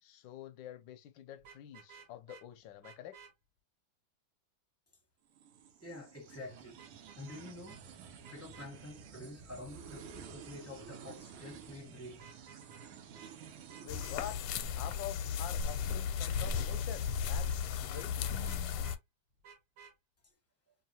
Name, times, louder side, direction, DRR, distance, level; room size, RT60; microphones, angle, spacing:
voice 1, 0.0-3.2 13.8-14.4 14.7-18.3, left 11 dB, 75° left, 1.1 m, -47 dB
Vehicle horn car horn honking, 1.4-2.4 2.8-3.3 6.8-7.4 7.7-7.8 8.2-8.7 12.1-12.9 13.1-13.3 13.7-14.2 17.9-19.0 19.4-19.9, right 6 dB, 70° right, 2.3 m, -55 dB
sound 1, 5.3-15.0, right 7 dB, 85° right, 1.7 m, -52 dB
voice 2, 5.8-6.8 7.2-7.8 8.3-12.2, left 2 dB, 10° left, 0.7 m, -48 dB
sound 2, 13.9-19.0, left 7 dB, 90° left, 1.5 m, -35 dB
4.8 x 2.7 x 2.8 m
omnidirectional pair, 2.4 m